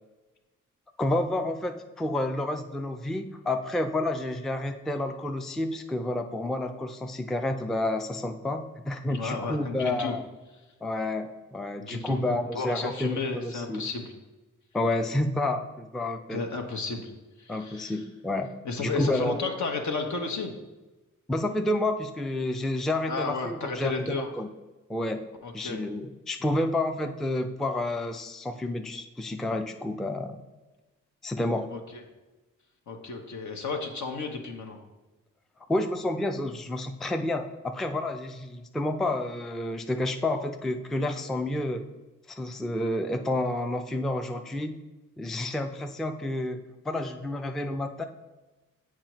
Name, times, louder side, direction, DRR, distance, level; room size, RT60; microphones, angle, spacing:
voice 1, 1.0-10.2 10.8-13.8 14.7-16.4 17.5-19.4 21.3-24.5 24.9-25.3 25.5-30.4 31.2-31.8 35.7-41.9 42.3-44.7 45.2-48.0, left 1 dB, ahead, 6 dB, 0.4 m, -30 dB
voice 2, 9.1-10.1 11.8-12.2 12.5-14.1 16.3-17.1 17.4-18.0 18.6-20.5 23.1-24.3 25.4-25.8 31.7-32.0 32.9-34.8, left 4 dB, 65° left, 3 dB, 1.0 m, -33 dB
7.4 x 4.7 x 3.0 m, 1.1 s
cardioid pair, 55°, 32 cm